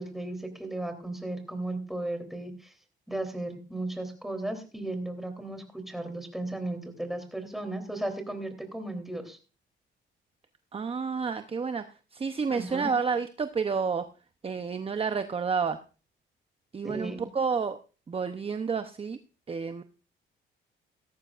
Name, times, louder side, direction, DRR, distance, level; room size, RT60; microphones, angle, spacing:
voice 1, 0.0-2.7 3.1-9.4 12.5-12.9 16.8-17.3, right 2 dB, ahead, 5 dB, 3.5 m, -35 dB
voice 2, 10.7-11.9 12.1-14.1 14.4-15.8 16.7-17.8 18.1-19.2 19.5-19.8, right 5 dB, 30° right, 9 dB, 0.8 m, -30 dB
17.0 x 13.5 x 2.5 m, 0.35 s
cardioid pair, 90°, 20 cm